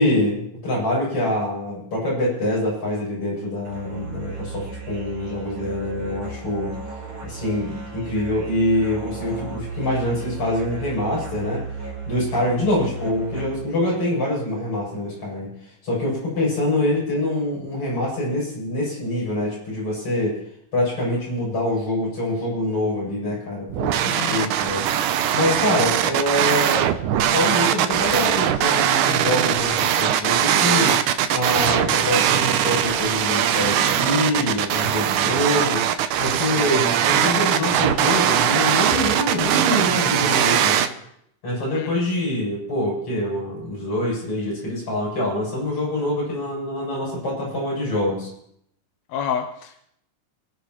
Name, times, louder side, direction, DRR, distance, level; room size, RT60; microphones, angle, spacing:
voice 1, 0.0-6.7 7.2-11.6 12.1-15.5 15.8-20.4 20.7-24.9 25.3-26.9 27.3-35.8 36.2-40.9 41.4-48.3, left 1 dB, 45° left, -6 dB, 8.7 m, -25 dB
Musical instrument, 3.6-13.8, right 3 dB, 40° right, 4.8 m, -34 dB
sound 1, 23.7-40.9, right 10 dB, 75° right, 2.2 m, -20 dB
voice 2, 24.1-24.5 41.7-42.0 49.1-49.8, left 8 dB, 70° left, 5 dB, 1.9 m, -29 dB
28.5 x 11.0 x 3.1 m, 0.72 s
omnidirectional pair, 3.8 m